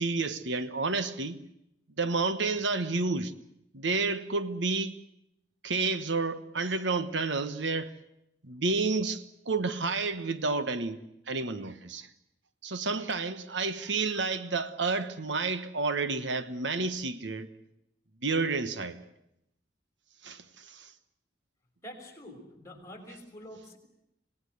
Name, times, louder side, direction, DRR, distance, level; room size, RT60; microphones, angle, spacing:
voice 1, 0.0-1.4 2.0-3.3 3.7-5.0 5.6-8.0 8.4-11.0 11.3-12.1 12.6-17.5 18.2-19.0 20.2-20.9, right 3 dB, 75° right, 1.3 m, -30 dB
voice 2, 21.8-23.8, equal, 15° left, 5.7 m, -46 dB
26.0 x 18.5 x 8.0 m
head